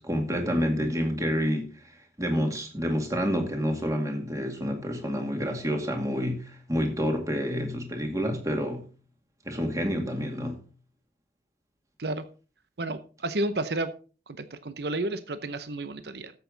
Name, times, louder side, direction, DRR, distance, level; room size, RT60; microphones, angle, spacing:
voice 1, 0.0-8.8 9.5-10.6, equal, 20° right, 2.2 m, -28 dB
voice 2, 12.8-13.9 14.3-16.3, right 2 dB, 65° right, 0.8 m, -31 dB
12.5 x 8.2 x 3.9 m
head